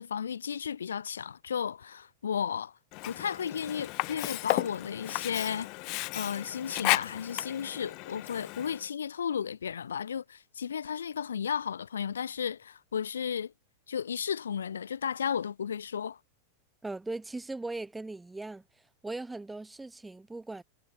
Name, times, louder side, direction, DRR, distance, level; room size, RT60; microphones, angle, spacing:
voice 1, 0.0-2.8 3.1-5.7 6.1-13.5 13.9-16.2, left 7 dB, 70° left, 2.3 m, -34 dB
Sink (filling or washing), 2.9-8.9, left 28 dB, 45° left, 4.1 m, -34 dB
voice 2, 16.8-18.6 19.0-20.6, right 2 dB, 10° right, 7.1 m, -39 dB
figure-of-eight pair, 90°, 0 cm